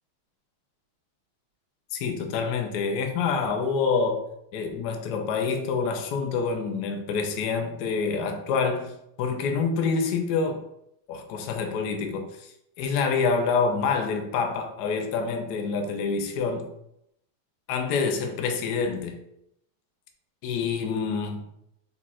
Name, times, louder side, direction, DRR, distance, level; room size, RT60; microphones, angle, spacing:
voice 1, 1.9-4.2 4.5-10.6 11.1-12.5 12.8-16.7 17.7-19.2 20.4-21.4, left 5 dB, 75° left, 4 dB, 0.9 m, -27 dB
4.2 x 4.2 x 2.4 m, 0.78 s
omnidirectional pair, 2.4 m